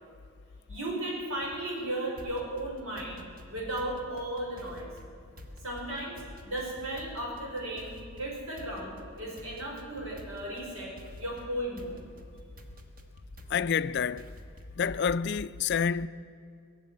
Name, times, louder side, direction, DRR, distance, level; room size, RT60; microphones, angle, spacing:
voice 1, 0.7-3.2 3.5-4.9 5.6-12.0, right 1 dB, 75° right, 5.1 m, -35 dB
sound 1, 2.2-14.9, left 1 dB, 40° right, 1.3 m, -49 dB
voice 2, 13.5-14.3 14.8-16.1, left 6 dB, 50° left, 0.4 m, -28 dB
18.5 x 7.4 x 9.6 m
head